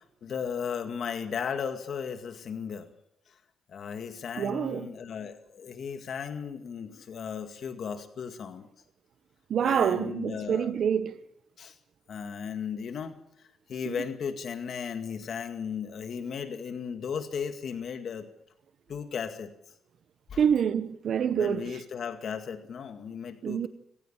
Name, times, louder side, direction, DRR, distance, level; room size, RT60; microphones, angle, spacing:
voice 1, 0.2-2.9 3.3-3.4 3.7-8.7 9.6-10.7 11.6-11.8 12.1-18.3 18.9-19.5 20.3-20.4 21.3-23.7, left 7 dB, 60° left, 2.0 m, -36 dB
voice 2, 4.4-4.9 9.5-11.2 13.8-13.9 20.4-21.8 23.4-23.7, right 8 dB, 60° right, 1.1 m, -27 dB
27.0 x 15.5 x 7.4 m
cardioid pair, 90°, 0 cm